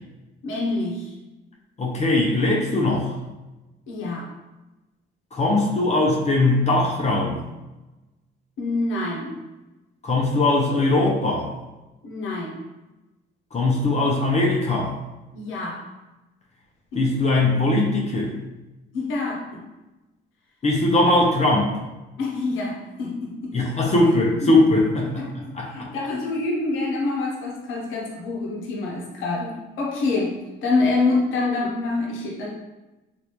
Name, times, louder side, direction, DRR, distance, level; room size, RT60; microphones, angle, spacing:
voice 1, 0.4-1.1 3.9-4.3 8.6-9.4 12.0-12.6 15.3-15.9 16.9-17.3 18.9-19.7 22.2-23.7 24.4-24.5 25.2-32.5, left 3 dB, 85° left, -3 dB, 0.8 m, -26 dB
voice 2, 1.8-3.2 5.3-7.4 10.0-11.5 13.5-15.0 16.9-18.3 20.6-21.8 23.5-25.9, left 2 dB, 35° left, -2 dB, 0.6 m, -20 dB
3.2 x 2.5 x 2.9 m, 1.1 s
cardioid pair, 90°, 20 cm